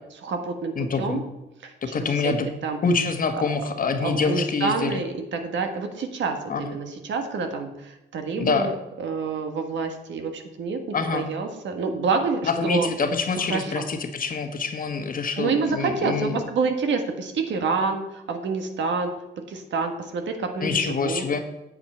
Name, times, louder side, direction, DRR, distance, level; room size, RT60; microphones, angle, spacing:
voice 1, 0.2-1.2 1.6-2.3 2.6-2.8 3.4-3.5 4.0-12.9 13.5-13.9 15.4-19.1 19.5-21.2, right 4 dB, 70° right, 5 dB, 1.5 m, -28 dB
voice 2, 0.7-1.2 1.8-2.5 2.8-5.0 6.5-6.7 8.4-8.7 10.9-11.3 12.4-16.4 20.6-21.4, left 4 dB, 45° left, 6 dB, 1.3 m, -26 dB
8.7 x 7.9 x 4.4 m, 0.95 s
cardioid pair, 90°, 20 cm